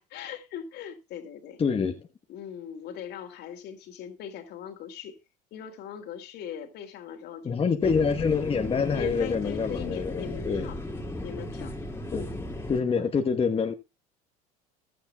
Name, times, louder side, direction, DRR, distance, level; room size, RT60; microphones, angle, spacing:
voice 1, 0.0-1.6 2.3-5.2 5.5-7.9 8.9-10.8 11.2-11.8 12.9-13.1, left 9 dB, 60° left, 2.5 m, -40 dB
voice 2, 1.6-2.1 7.4-10.7 12.1-12.4 12.7-13.7, left 5 dB, 30° left, 1.2 m, -26 dB
sound 1, 7.8-12.8, left 1 dB, 15° left, 2.3 m, -36 dB
15.0 x 11.5 x 2.3 m
hypercardioid pair, 75°, 20 cm